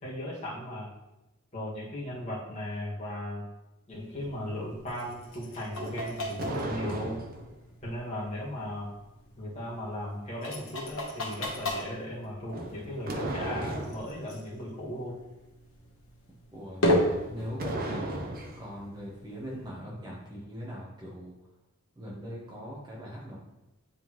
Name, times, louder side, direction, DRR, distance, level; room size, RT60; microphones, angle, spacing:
voice 1, 0.0-0.9 1.5-3.4 3.9-7.2 7.8-8.9 9.4-15.2, left 1 dB, 30° left, -6 dB, 1.9 m, -37 dB
sound 1, 3.9-19.7, left 1 dB, 65° left, 1.2 m, -36 dB
sound 2, 5.8-7.5 12.5-14.1 16.9-18.7, right 2 dB, 45° right, 0.7 m, -36 dB
voice 2, 16.5-18.3 18.6-21.3 22.0-23.4, equal, 20° right, -4 dB, 1.2 m, -40 dB
9.7 x 3.7 x 3.1 m, 0.97 s
head